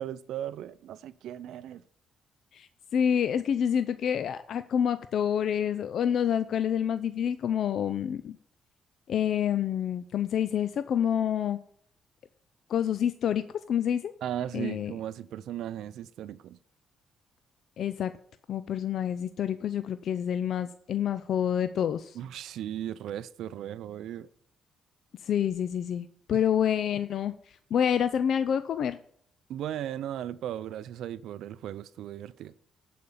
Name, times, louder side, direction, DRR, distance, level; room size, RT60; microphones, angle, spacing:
voice 1, 0.0-1.8 14.2-16.6 22.1-24.3 26.3-26.4 29.5-32.5, right 11 dB, 80° right, 0.4 m, -37 dB
voice 2, 2.5-8.4 9.1-11.6 12.7-14.1 14.5-14.9 17.8-18.1 18.5-22.2 25.2-27.3 27.7-29.0, left 9 dB, 65° left, 0.5 m, -28 dB
10.5 x 5.1 x 7.1 m
cardioid pair, 90°, 0 cm